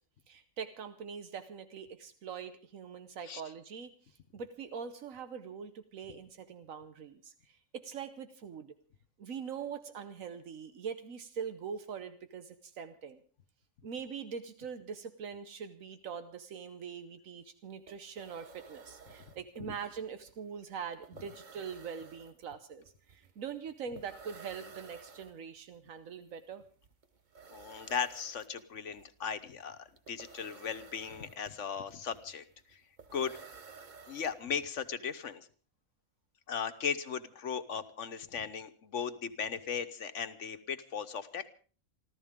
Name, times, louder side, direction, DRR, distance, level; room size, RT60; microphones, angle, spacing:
voice 1, 0.3-8.7 9.2-13.2 13.8-26.6, right 6 dB, 85° right, 9 dB, 1.4 m, -43 dB
sound 1, 17.4-17.5 17.7-34.8, right 5 dB, 40° right, 1.0 m, -55 dB
voice 2, 27.5-32.4 33.1-33.3 34.1-35.5 36.5-41.5, left 7 dB, 70° left, 10 dB, 1.3 m, -37 dB
28.0 x 13.0 x 3.7 m, 0.40 s
omnidirectional pair, 1.4 m